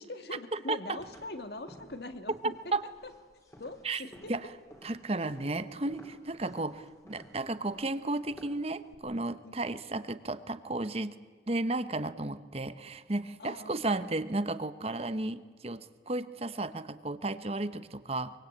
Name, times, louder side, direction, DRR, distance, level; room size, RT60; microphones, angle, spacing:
voice 1, 0.0-2.8 3.0-3.1 3.6-4.3 5.2-5.3 9.4-9.5 13.4-13.9, left 2 dB, 65° left, 8 dB, 1.9 m, -42 dB
sound 1, 1.0-8.9, equal, 15° left, 3.0 m, -55 dB
voice 2, 4.8-11.1 11.5-18.3, right 2 dB, 35° right, 13 dB, 0.9 m, -33 dB
24.0 x 23.5 x 8.7 m, 1.5 s
head